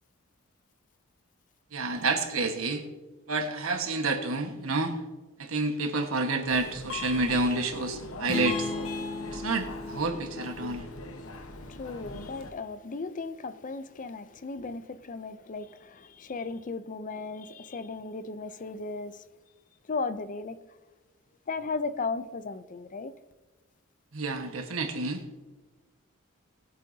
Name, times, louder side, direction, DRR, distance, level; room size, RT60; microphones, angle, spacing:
voice 1, 1.7-2.8 3.3-4.9 5.4-8.7 9.3-10.9 24.1-25.2, right 3 dB, 80° right, 1.4 m, -29 dB
Subway metro underground, 6.5-12.5, left 3 dB, 85° left, 1.1 m, -40 dB
sound 1, 8.3-12.0, left 1 dB, 20° left, 1.9 m, -37 dB
voice 2, 11.7-19.2 19.9-20.6 21.5-23.1, left 4 dB, 40° left, 0.5 m, -36 dB
20.0 x 8.4 x 2.8 m
head